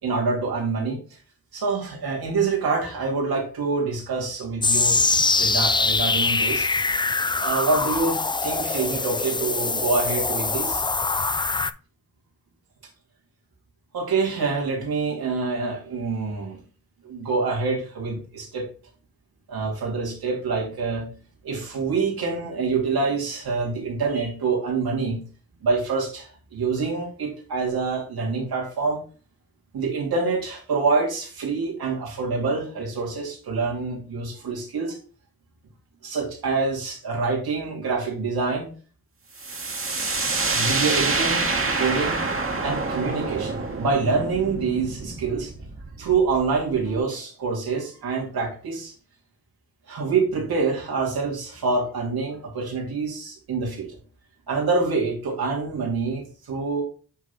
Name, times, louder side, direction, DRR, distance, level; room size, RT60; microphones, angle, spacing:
voice 1, 0.0-1.0 1.5-5.0 5.4-6.7 7.4-10.8 13.9-16.6 17.0-18.7 19.5-21.1 21.4-25.2 25.6-29.0 29.7-35.0 36.0-38.7 40.3-41.5 41.8-42.2 42.6-45.5 46.0-48.9 49.9-53.9 54.5-56.8, right 4 dB, 75° right, -2 dB, 2.3 m, -26 dB
sound 1, 4.6-11.7, left 4 dB, 15° left, 0.3 m, -23 dB
sound 2, 39.4-47.0, right 3 dB, 35° right, 1.6 m, -27 dB
8.1 x 3.2 x 4.0 m, 0.39 s
supercardioid pair, 45°, 37 cm